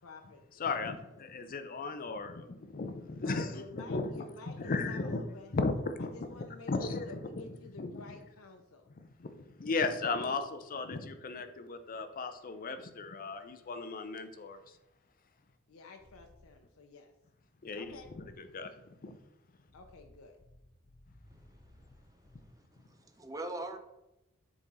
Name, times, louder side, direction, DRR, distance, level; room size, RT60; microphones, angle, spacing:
voice 1, 0.0-0.4 3.2-5.5 6.1-8.9 15.7-17.1 17.8-18.1 19.7-20.4, left 3 dB, 85° left, 3 dB, 0.6 m, -51 dB
voice 2, 0.6-5.3 5.5-6.1 6.4-8.0 9.0-14.8 17.6-19.2, left 3 dB, 45° left, 9 dB, 0.6 m, -36 dB
sound 1, 16.0-16.4 17.8-18.3 19.7-22.4, left 1 dB, 70° left, 1.7 m, -59 dB
voice 3, 21.3-23.8, right 2 dB, 15° right, 6 dB, 0.5 m, -45 dB
7.0 x 3.6 x 4.0 m, 0.93 s
head